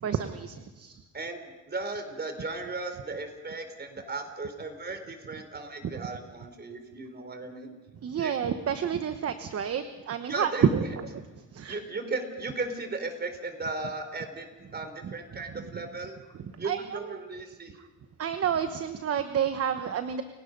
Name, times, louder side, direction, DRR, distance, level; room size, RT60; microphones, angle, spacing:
voice 1, 0.0-1.0 8.0-11.1 11.5-11.8 16.6-17.0 18.2-20.2, right 8 dB, 50° right, 9 dB, 1.1 m, -29 dB
voice 2, 1.1-7.8 8.2-8.3 10.3-10.7 11.7-14.5 14.7-16.2 16.6-17.8, right 3 dB, 35° right, 7 dB, 4.2 m, -36 dB
29.5 x 17.5 x 5.4 m, 1.2 s
cardioid pair, 90°, 30 cm